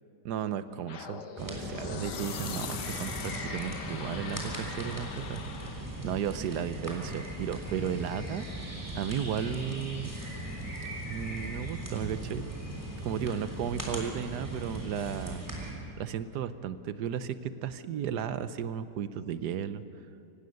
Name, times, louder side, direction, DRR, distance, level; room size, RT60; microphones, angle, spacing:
voice 1, 0.2-5.7 6.0-8.5 8.9-10.1 11.1-12.5 13.0-15.5 16.0-19.8, right 8 dB, 75° right, 13 dB, 1.3 m, -34 dB
sound 1, 0.9-5.9, left 7 dB, 75° left, 1.6 m, -41 dB
sound 2, 1.4-15.7, right 1 dB, 10° right, 3.5 m, -39 dB
24.5 x 19.0 x 6.5 m, 2.6 s
omnidirectional pair, 1.8 m